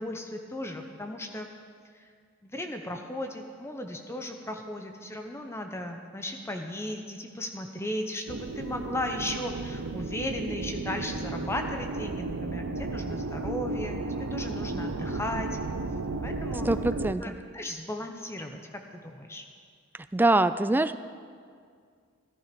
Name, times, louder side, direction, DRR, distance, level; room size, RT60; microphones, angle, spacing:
voice 1, 0.0-1.5 1.9-2.1 2.4-14.0 14.3-15.6 16.2-16.7 17.2-19.4, left 1 dB, 10° left, 4 dB, 0.8 m, -36 dB
sound 1, 8.3-17.1, right 3 dB, 85° right, 0.7 m, -34 dB
voice 2, 16.7-17.2 20.1-21.0, right 2 dB, 10° right, 12 dB, 0.3 m, -23 dB
14.5 x 13.5 x 5.2 m, 2.1 s
head